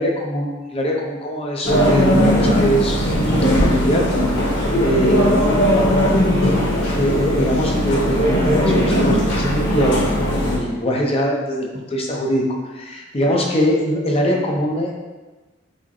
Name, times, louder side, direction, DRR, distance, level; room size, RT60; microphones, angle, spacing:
voice 1, 0.0-4.1 4.8-5.4 6.9-14.9, equal, 30° left, -1 dB, 0.6 m, -22 dB
sound 1, 1.6-10.6, equal, 90° left, 1.3 m, -18 dB
4.9 x 2.1 x 4.1 m, 1.2 s
head